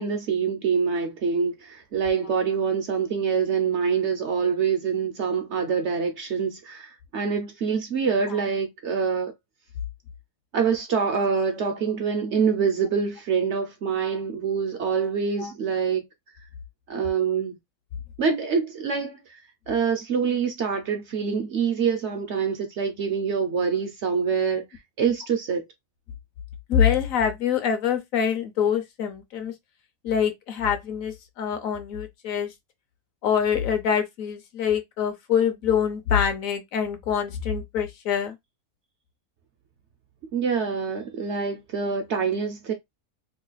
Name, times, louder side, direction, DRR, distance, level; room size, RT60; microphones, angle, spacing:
voice 1, 0.0-9.3 10.5-16.0 16.9-17.6 18.2-19.4 19.7-24.6 25.0-25.6 40.3-42.7, right 6 dB, 60° right, 0.8 m, -25 dB
voice 2, 26.7-29.5 30.0-32.5 33.2-38.4, left 8 dB, 70° left, 1.0 m, -25 dB
3.1 x 2.3 x 3.9 m
omnidirectional pair, 1.6 m